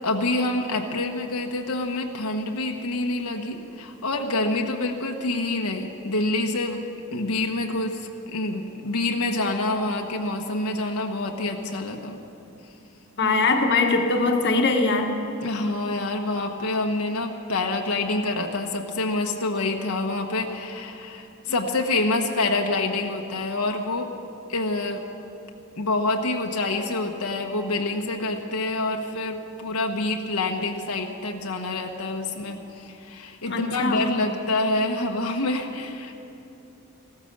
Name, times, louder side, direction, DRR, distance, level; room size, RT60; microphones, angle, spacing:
voice 1, 0.0-6.8 7.1-12.2 15.4-24.1 24.5-25.0 25.8-36.2, left 2 dB, 85° left, 2 dB, 1.2 m, -27 dB
voice 2, 13.2-15.1 33.5-34.0, left 3 dB, 55° left, 4 dB, 1.2 m, -21 dB
15.5 x 13.5 x 6.7 m, 2.7 s
head